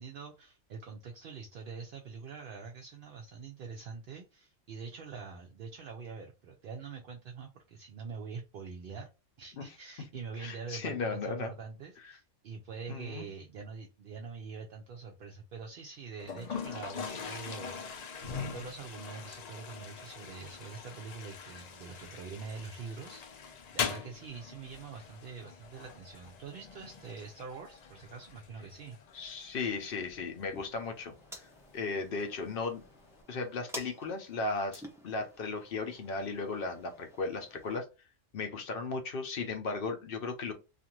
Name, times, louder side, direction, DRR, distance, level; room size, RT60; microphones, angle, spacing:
voice 1, 0.0-9.1 9.4-29.0, right 5 dB, 60° right, 2 dB, 0.6 m, -45 dB
voice 2, 10.4-11.5 12.9-13.3 29.1-31.4 31.7-32.8 33.3-37.9 38.3-40.5, left 4 dB, 55° left, 5 dB, 0.7 m, -36 dB
Toilet flush, 16.2-33.2, left 6 dB, 80° left, 0.3 m, -43 dB
sound 1, 30.5-37.8, equal, 5° right, 0.4 m, -51 dB
2.5 x 2.4 x 2.9 m, 0.28 s
omnidirectional pair, 1.3 m